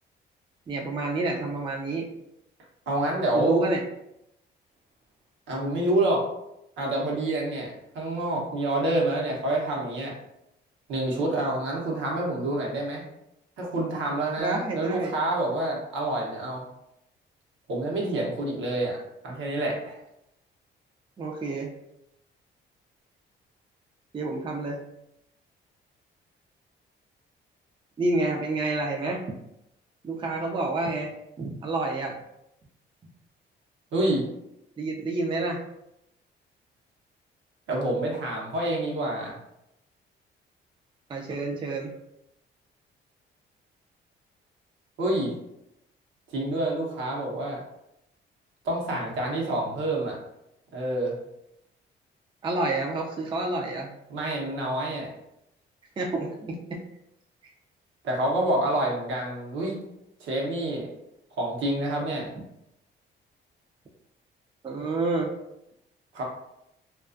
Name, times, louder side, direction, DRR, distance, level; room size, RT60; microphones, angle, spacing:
voice 1, 0.7-2.1 3.3-3.8 14.4-15.2 21.2-21.7 24.1-24.8 28.0-29.2 30.0-31.1 31.4-32.1 34.8-35.6 41.1-41.9 52.4-53.9 56.0-56.8 64.6-65.3, right 2 dB, 25° right, 0 dB, 0.4 m, -28 dB
voice 2, 2.9-3.6 5.5-6.3 6.8-10.1 10.9-13.0 13.6-16.6 17.7-19.0 19.2-20.0 33.9-34.2 37.7-39.4 45.0-45.3 46.3-47.6 48.6-50.2 50.7-51.2 54.1-55.1 58.0-59.8 60.2-60.9 61.4-62.3 66.1-66.2, right 1 dB, 75° right, -2 dB, 0.8 m, -27 dB
2.3 x 2.3 x 2.5 m, 0.83 s
cardioid pair, 90°, 20 cm